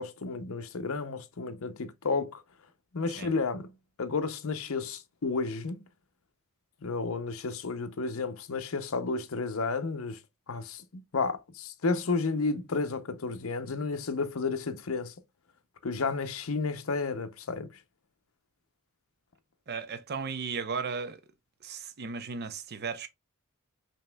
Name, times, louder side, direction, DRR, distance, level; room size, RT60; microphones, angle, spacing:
voice 1, 0.0-2.4 2.9-3.7 4.0-5.8 6.8-10.2 10.5-15.1 15.8-17.7, left 4 dB, 70° left, 0.7 m, -32 dB
voice 2, 19.7-21.2 21.6-23.1, right 5 dB, 50° right, 0.6 m, -35 dB
5.2 x 3.0 x 2.2 m
head